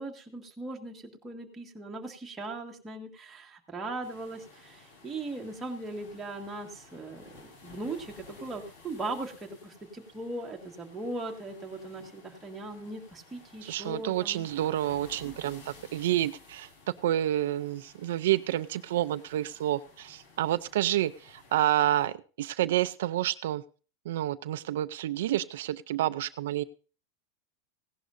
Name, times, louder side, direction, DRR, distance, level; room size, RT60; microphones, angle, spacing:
voice 1, 0.0-14.5 15.2-15.6, right 2 dB, 10° right, 0 dB, 1.7 m, -39 dB
sound 1, 4.0-22.1, left 3 dB, 55° left, 4.2 m, -55 dB
voice 2, 13.6-16.7 17.0-23.6 24.1-26.6, right 13 dB, 75° right, 11 dB, 0.5 m, -29 dB
16.5 x 11.0 x 2.6 m, 0.37 s
supercardioid pair, 165°, 0 cm